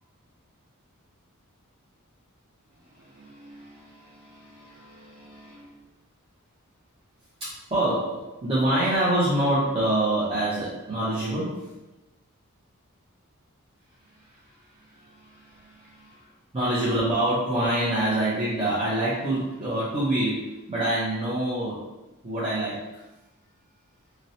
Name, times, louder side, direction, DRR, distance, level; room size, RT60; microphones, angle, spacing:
voice 1, 2.9-5.7 7.4-11.7 14.3-14.5 14.9-16.2 16.5-21.9 22.2-23.0, right 1 dB, 25° right, -10 dB, 0.5 m, -27 dB
2.7 x 2.0 x 2.6 m, 1.0 s
head